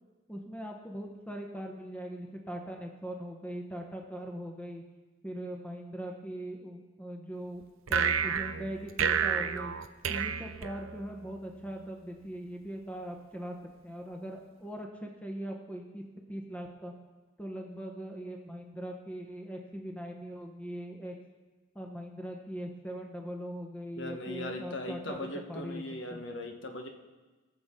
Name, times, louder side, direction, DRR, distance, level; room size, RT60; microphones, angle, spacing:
voice 1, 0.3-4.8 5.2-7.6 7.9-9.7 10.1-13.6 13.8-16.0 16.3-16.9 17.4-21.1 21.7-25.8 26.1-26.2, equal, 5° left, 1 dB, 0.9 m, -40 dB
sound 1, 7.9-11.3, right 7 dB, 80° right, 0.6 m, -30 dB
voice 2, 24.0-26.9, left 1 dB, 60° left, 4 dB, 1.1 m, -39 dB
20.0 x 6.9 x 3.7 m, 1.3 s
head